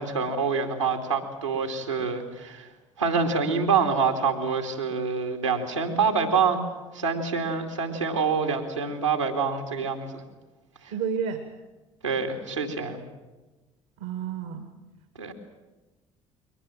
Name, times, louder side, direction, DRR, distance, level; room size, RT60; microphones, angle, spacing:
voice 1, 0.0-2.7 3.0-6.6 6.9-10.2 10.8-10.9 12.0-13.0 15.2-15.3, right 5 dB, 90° right, 2 dB, 2.6 m, -26 dB
voice 2, 10.9-11.4 14.0-14.7, right 7 dB, 70° right, 9 dB, 1.8 m, -30 dB
22.5 x 19.0 x 8.9 m, 1.2 s
figure-of-eight pair, 50°, 15 cm